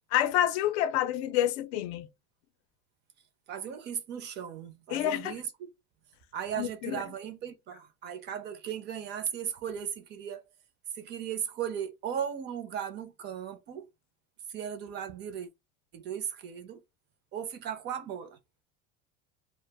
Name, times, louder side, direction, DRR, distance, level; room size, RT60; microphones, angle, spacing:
voice 1, 0.1-2.1 4.9-5.4 6.6-7.0, left 12 dB, 75° left, 0.5 m, -28 dB
voice 2, 3.5-5.7 6.3-10.5 10.9-13.9 14.5-15.5 15.9-16.8 17.3-18.4, right 8 dB, 35° right, 0.4 m, -37 dB
2.2 x 2.0 x 3.3 m
supercardioid pair, 145°, 33 cm